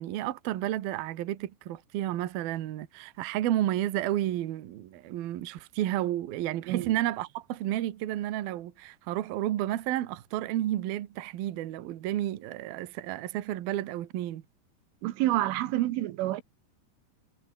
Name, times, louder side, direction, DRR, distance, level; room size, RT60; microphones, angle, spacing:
voice 1, 0.0-14.4, right 13 dB, 60° right, 2.8 m, -31 dB
voice 2, 15.0-16.4, right 15 dB, 80° right, 3.7 m, -28 dB
omnidirectional pair, 5.6 m